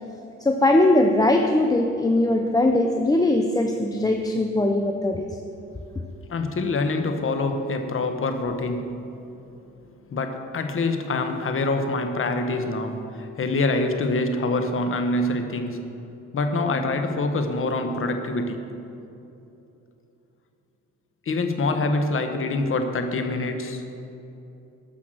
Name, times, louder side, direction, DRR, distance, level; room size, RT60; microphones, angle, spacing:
voice 1, 0.4-5.3, left 1 dB, 10° left, 3 dB, 0.6 m, -20 dB
voice 2, 6.3-8.9 10.1-15.8 16.3-18.6 21.3-23.8, left 2 dB, 45° left, 6 dB, 1.2 m, -25 dB
13.0 x 5.9 x 6.2 m, 2.9 s
cardioid pair, 90°, 30 cm